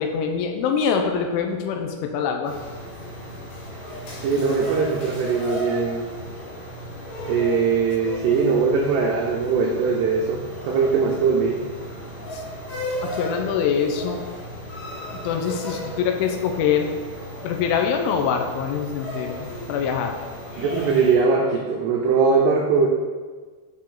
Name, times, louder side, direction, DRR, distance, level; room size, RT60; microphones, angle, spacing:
voice 1, 0.0-2.6 12.3-12.4 13.0-14.3 15.2-16.9 17.4-20.1, left 7 dB, 80° left, 4 dB, 3.0 m, -24 dB
sound 1, 2.4-21.2, equal, 65° left, 3.0 m, -35 dB
voice 2, 4.2-6.1 7.3-11.6 20.6-22.9, right 5 dB, 90° right, 0 dB, 2.4 m, -21 dB
9.5 x 4.4 x 3.8 m, 1.4 s
omnidirectional pair, 5.7 m